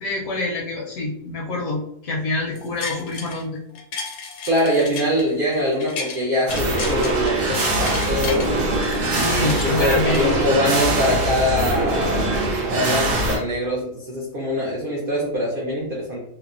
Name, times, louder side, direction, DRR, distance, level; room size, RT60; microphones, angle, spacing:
voice 1, 0.0-3.6 8.8-10.3, left 2 dB, 70° left, -2 dB, 1.0 m, -26 dB
sound 1, 2.6-3.4 3.8-6.2 6.5-8.5 8.8-10.8 11.3-11.4, left 5 dB, 90° left, 1.2 m, -33 dB
voice 2, 4.5-8.5 9.1-12.3 12.7-16.2, equal, 70° right, -3 dB, 0.5 m, -23 dB
sound 2, 6.5-13.4, right 2 dB, 90° right, 1.2 m, -22 dB
3.2 x 2.1 x 2.4 m, 0.75 s
omnidirectional pair, 1.6 m